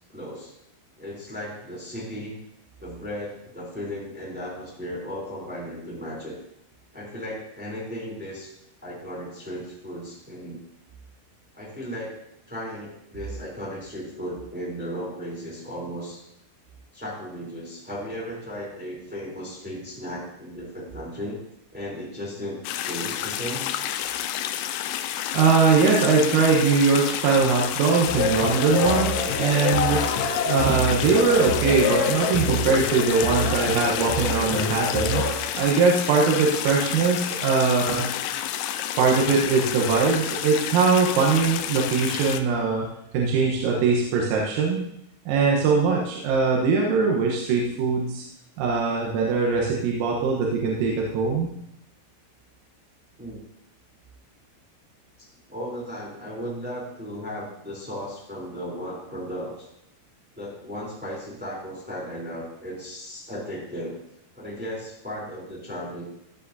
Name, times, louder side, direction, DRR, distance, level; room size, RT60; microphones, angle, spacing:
voice 1, 0.1-0.5 1.0-2.3 2.8-6.4 6.9-8.5 8.8-10.6 11.5-12.2 12.5-16.2 16.9-21.4 21.7-22.6 22.9-23.7 53.2-53.4 55.5-59.7 60.3-64.0 64.3-66.0, equal, 5° right, -5 dB, 2.1 m, -35 dB
sound 1, 22.6-42.4, left 11 dB, 90° left, 2.6 m, -30 dB
voice 2, 25.3-30.0 30.5-35.2 35.6-38.1 39.0-42.9 43.1-44.8 45.3-48.2 48.6-51.5, right 4 dB, 85° right, -2 dB, 3.9 m, -21 dB
sound 2, 28.1-35.3, left 3 dB, 70° left, 3.5 m, -26 dB
15.5 x 8.4 x 2.7 m, 0.80 s
omnidirectional pair, 5.8 m